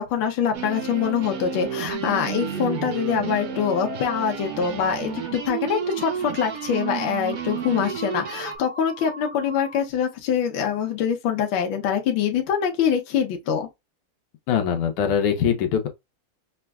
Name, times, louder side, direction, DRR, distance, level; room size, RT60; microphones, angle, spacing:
voice 1, 0.0-13.7, left 8 dB, 70° left, 1.4 m, -24 dB
sound 1, 0.5-8.6, right 8 dB, 90° right, 0.7 m, -32 dB
sound 2, 1.9-9.8, equal, 50° left, 0.3 m, -39 dB
voice 2, 14.5-15.9, left 8 dB, 85° left, 1.7 m, -22 dB
6.0 x 2.3 x 2.3 m
omnidirectional pair, 2.4 m